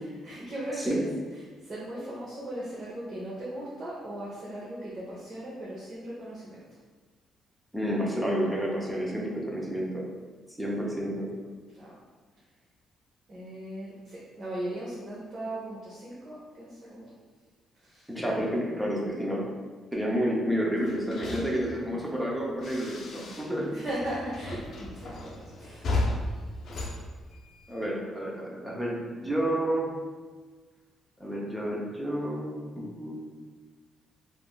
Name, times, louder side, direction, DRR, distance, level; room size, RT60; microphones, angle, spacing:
voice 1, 0.2-1.0 1.6-6.6 11.7-11.9 13.3-17.1 17.8-18.1 23.7-25.9, right 1 dB, 45° right, -7 dB, 0.8 m, -38 dB
voice 2, 7.7-10.1 10.6-11.3 18.1-19.4 19.9-23.7 27.7-30.0 31.2-33.1, equal, 10° right, -3 dB, 0.6 m, -30 dB
sound 1, 20.8-23.7 24.0-27.9, left 2 dB, 60° left, 0.5 m, -35 dB
3.3 x 2.4 x 2.3 m, 1.4 s
cardioid pair, 90°, 0 cm